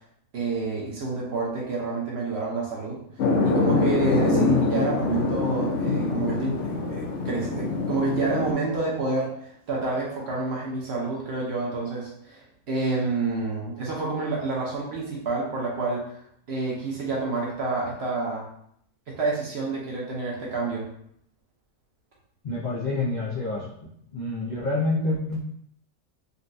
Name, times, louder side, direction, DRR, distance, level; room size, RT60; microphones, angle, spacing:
voice 1, 0.3-3.0 3.4-16.1 16.5-18.4 19.1-20.9, right 3 dB, 55° right, -3 dB, 0.8 m, -28 dB
sound 1, 3.2-8.5, left 3 dB, 65° left, 0.9 m, -24 dB
voice 2, 22.4-23.7 24.1-25.5, left 2 dB, 85° left, -6 dB, 0.4 m, -27 dB
3.8 x 2.2 x 2.5 m, 0.71 s
omnidirectional pair, 1.6 m